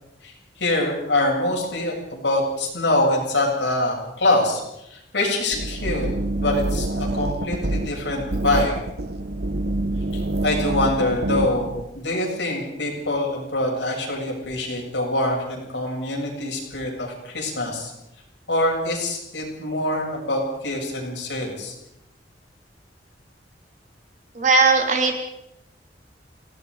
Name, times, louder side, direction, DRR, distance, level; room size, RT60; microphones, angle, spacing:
voice 1, 0.2-4.6 4.9-6.1 6.4-8.8 10.1-17.9 18.5-21.7, left 1 dB, 80° left, 0 dB, 7.8 m, -24 dB
sound 1, 5.5-11.8, right 2 dB, 60° right, 1.3 m, -26 dB
voice 2, 24.4-25.3, right 4 dB, 45° right, 3 dB, 3.5 m, -18 dB
28.5 x 18.0 x 5.0 m, 0.84 s
head